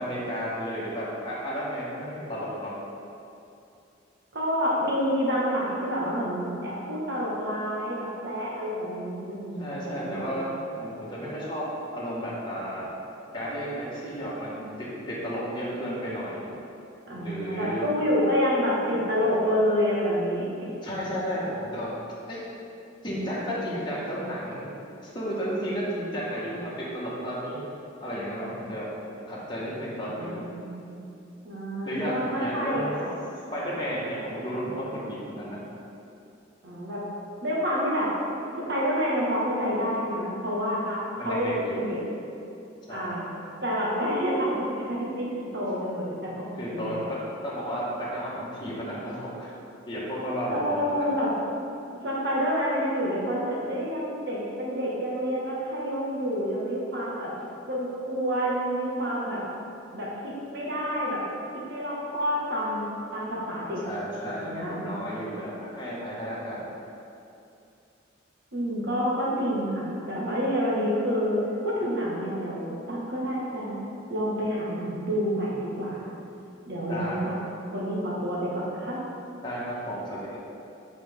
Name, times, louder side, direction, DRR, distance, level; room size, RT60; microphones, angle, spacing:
voice 1, 0.0-2.7 9.6-10.5 10.8-11.6 11.9-12.9 13.3-16.5 17.2-17.9 20.8-21.9 22.3-22.4 23.0-24.7 25.0-27.6 28.0-28.9 29.3-30.4 31.8-32.9 33.5-35.6 41.2-41.8 42.9-43.2 46.6-47.2 47.4-49.5 49.9-51.1 63.8-66.6 76.9-77.4 79.4-80.4, equal, 25° left, -8 dB, 1.5 m, -33 dB
voice 2, 4.3-10.5 17.1-20.7 30.0-31.1 31.4-33.1 36.6-37.0 37.4-38.1 38.6-42.0 42.9-43.2 43.6-47.0 50.5-51.3 52.0-57.3 57.7-59.4 59.9-61.2 61.5-62.8 63.1-63.8 64.2-64.9 68.5-71.4 71.6-73.8 74.1-76.1 76.6-77.3 77.7-79.0, equal, 60° right, -5 dB, 1.6 m, -28 dB
8.7 x 5.0 x 3.6 m, 2.7 s
head